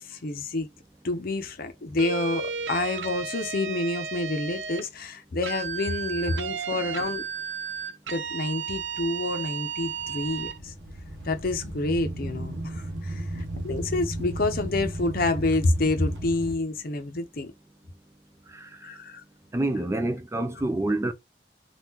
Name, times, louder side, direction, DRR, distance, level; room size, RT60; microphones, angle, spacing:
voice 1, 0.1-0.7 1.0-2.4 2.7-7.2 8.1-10.7 11.2-17.5 18.8-19.2, left 2 dB, 55° left, 0.7 m, -28 dB
sound 1, 2.0-4.9 5.4-10.6, right 7 dB, 90° right, 0.5 m, -33 dB
sound 2, 9.8-16.6, right 1 dB, 70° right, 0.9 m, -35 dB
voice 2, 19.5-21.1, right 2 dB, 15° right, 0.4 m, -27 dB
3.6 x 2.4 x 2.9 m
head